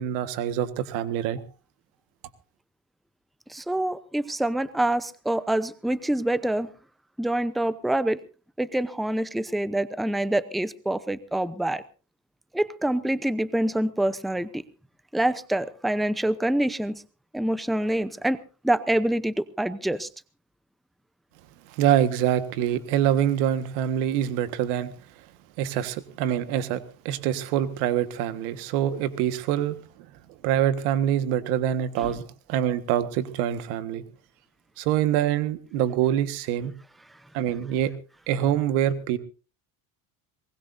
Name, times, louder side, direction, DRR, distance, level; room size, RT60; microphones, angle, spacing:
voice 1, 0.0-1.4 21.7-24.9 25.6-29.8 30.4-34.0 34.8-36.7 37.3-37.9 38.3-39.2, right 10 dB, 85° right, 11 dB, 1.7 m, -25 dB
voice 2, 3.5-6.7 7.2-8.2 8.6-11.8 12.5-14.6 15.1-17.0 17.3-20.1 32.0-32.1, right 1 dB, ahead, 14 dB, 0.7 m, -26 dB
23.0 x 20.0 x 2.7 m, 0.36 s
supercardioid pair, 110°, 43 cm